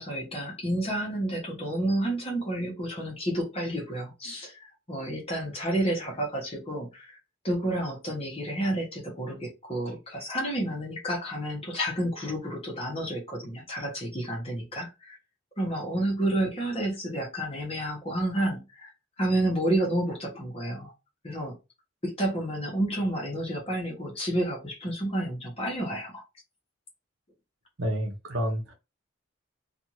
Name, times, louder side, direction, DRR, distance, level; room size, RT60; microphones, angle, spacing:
voice 1, 0.0-7.2 7.4-15.2 15.6-18.9 19.2-20.9 21.2-21.5 22.0-26.2, right 1 dB, 30° left, 1.0 m, -30 dB
voice 2, 27.8-28.7, equal, 65° right, 0.8 m, -29 dB
2.5 x 2.5 x 2.9 m
head